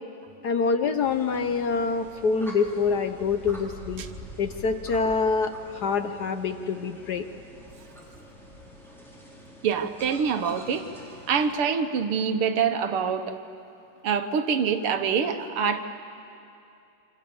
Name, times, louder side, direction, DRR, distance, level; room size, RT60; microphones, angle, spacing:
voice 1, 0.4-4.0 4.4-7.2, left 5 dB, 60° left, 8 dB, 1.2 m, -26 dB
sound 1, 1.0-11.5, equal, ahead, 4.4 m, -45 dB
voice 2, 9.6-10.9 11.3-13.4 14.0-15.9, right 6 dB, 85° right, 8 dB, 2.1 m, -25 dB
28.5 x 26.0 x 7.0 m, 2.6 s
omnidirectional pair, 2.4 m